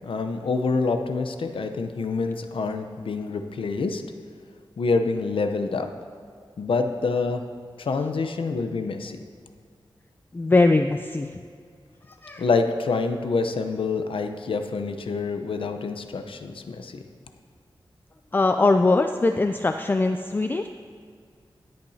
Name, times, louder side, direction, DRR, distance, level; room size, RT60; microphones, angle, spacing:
voice 1, 0.0-4.0 4.8-5.9 6.6-7.5 7.8-9.2 12.4-17.0, left 4 dB, 85° left, 7 dB, 0.7 m, -26 dB
voice 2, 10.3-11.4 12.1-12.4 18.3-20.7, left 3 dB, 25° left, 7 dB, 0.4 m, -21 dB
25.0 x 8.6 x 2.8 m, 2.1 s
wide cardioid pair, 95°, 9 cm